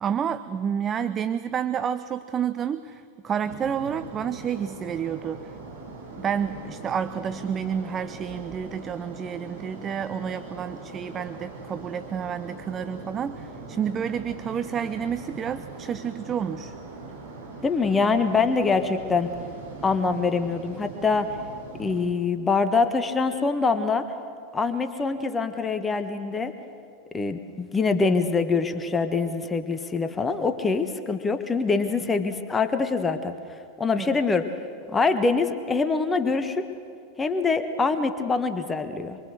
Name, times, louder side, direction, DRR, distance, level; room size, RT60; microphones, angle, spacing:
voice 1, 0.0-5.5 6.2-16.7 34.0-34.2, right 8 dB, 25° right, 12 dB, 0.7 m, -30 dB
sound 1, 3.4-22.0, right 3 dB, 65° right, 8.0 m, -41 dB
voice 2, 17.6-19.3 19.8-21.3 21.8-24.1 24.5-26.5 27.1-33.3 33.8-34.5 34.9-36.7 37.2-39.2, left 4 dB, 15° left, 9 dB, 1.3 m, -24 dB
25.0 x 23.5 x 6.6 m, 2.3 s
figure-of-eight pair, 90°, 0 cm